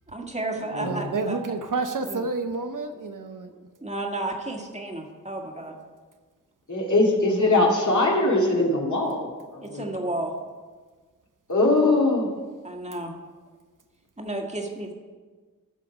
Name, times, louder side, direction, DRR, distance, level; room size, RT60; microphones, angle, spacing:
voice 1, 0.1-1.4 2.1-2.2 3.8-5.8 9.6-10.3 12.6-13.1 14.2-14.9, right 2 dB, 20° right, 1 dB, 1.9 m, -32 dB
voice 2, 0.8-3.5, right 3 dB, 65° right, 7 dB, 0.9 m, -29 dB
voice 3, 6.7-9.8 11.5-12.3, left 2 dB, 60° left, -2 dB, 2.5 m, -21 dB
14.5 x 5.8 x 5.0 m, 1.4 s
cardioid pair, 45°, 34 cm